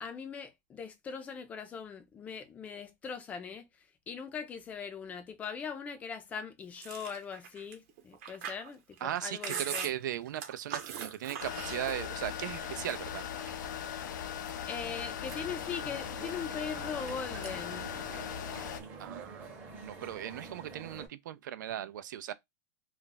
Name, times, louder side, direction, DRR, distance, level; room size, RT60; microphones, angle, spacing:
voice 1, 0.0-3.7 4.1-9.9 14.7-17.9, left 6 dB, 15° left, 0.4 m, -40 dB
Chewing mastication, 6.8-12.3 12.6-13.7 14.2-14.8 15.1-17.1 17.4-17.8 18.0-18.9, right 7 dB, 50° right, 0.9 m, -42 dB
voice 2, 9.0-13.3 19.0-19.5 19.8-22.3, right 11 dB, 90° right, 0.5 m, -38 dB
sound 1, 11.4-18.8, left 9 dB, 90° left, 0.5 m, -39 dB
sound 2, 15.2-21.1, right 4 dB, 20° right, 0.8 m, -47 dB
2.4 x 2.2 x 3.9 m
supercardioid pair, 165°, 10 cm